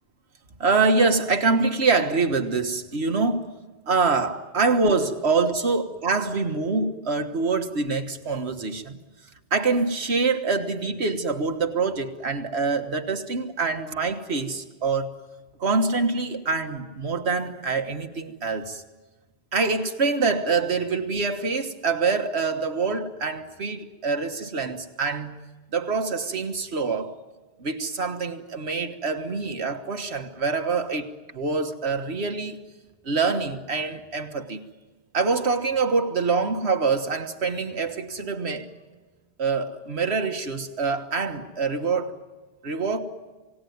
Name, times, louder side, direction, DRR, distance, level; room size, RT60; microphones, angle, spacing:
voice 1, 0.6-3.5 3.9-9.0 9.5-15.1 15.6-18.8 19.5-25.4 25.7-27.1 27.6-32.6 33.0-34.6 35.1-38.7 39.4-42.2 42.6-43.0, right 4 dB, 85° right, 1.7 m, -25 dB
28.0 x 18.0 x 9.4 m
omnidirectional pair, 1.1 m